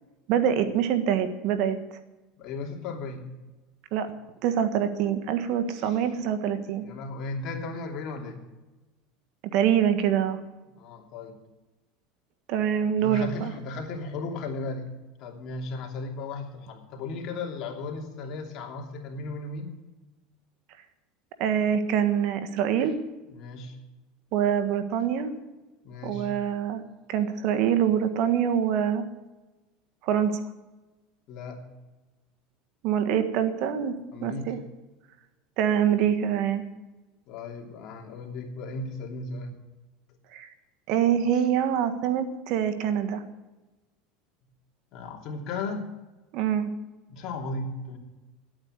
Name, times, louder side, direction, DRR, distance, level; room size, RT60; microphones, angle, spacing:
voice 1, 0.3-1.8 3.9-4.1 4.4-6.8 9.5-10.4 12.5-13.5 21.4-23.0 24.3-25.3 26.0-26.8 27.1-29.1 30.0-30.4 32.8-33.9 34.2-34.6 35.6-36.6 40.3-40.5 40.9-43.2 46.3-46.7, right 9 dB, 60° right, 9 dB, 1.5 m, -25 dB
voice 2, 2.4-3.3 5.8-6.0 6.8-8.4 10.7-11.4 13.0-14.9 15.2-19.7 23.3-23.8 25.8-26.3 31.3-31.6 34.1-34.5 37.3-39.6 41.3-41.4 44.9-45.9 47.1-48.0, left 3 dB, 50° left, 2 dB, 2.9 m, -36 dB
12.0 x 8.9 x 9.2 m, 1.1 s
supercardioid pair, 115°, 0 cm